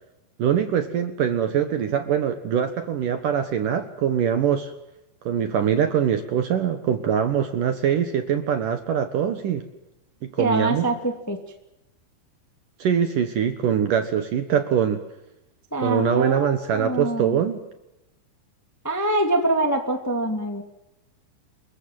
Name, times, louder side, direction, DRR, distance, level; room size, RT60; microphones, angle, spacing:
voice 1, 0.4-4.7 5.3-9.6 10.2-10.9 12.8-15.0 15.8-17.6, right 8 dB, 60° right, 8 dB, 2.4 m, -23 dB
voice 2, 10.4-11.4 15.7-17.4 18.8-20.6, right 2 dB, 5° left, 5 dB, 1.2 m, -24 dB
29.0 x 22.0 x 7.6 m, 0.88 s
omnidirectional pair, 5.3 m